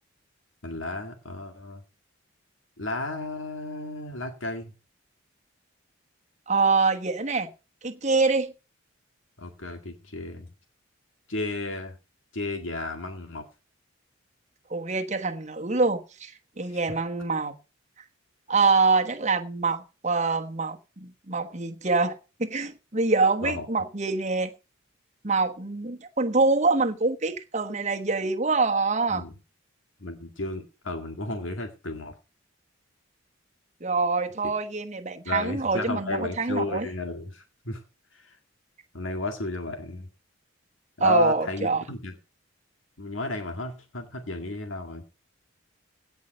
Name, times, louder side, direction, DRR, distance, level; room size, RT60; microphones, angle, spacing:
voice 1, 0.6-1.8 2.8-4.7 9.4-10.5 11.3-11.9 12.3-13.5 16.7-16.8 23.4-23.7 29.1-29.3 30.0-32.1 35.3-37.8 38.1-38.4 38.9-40.1 41.0-42.1 43.0-45.0, left 2 dB, 75° left, 2.0 m, -33 dB
voice 2, 6.5-7.5 7.8-8.5 14.7-17.5 18.5-24.5 25.2-29.2 33.8-36.9 41.0-41.8, right 3 dB, 35° right, 1.2 m, -25 dB
17.0 x 5.6 x 6.6 m
head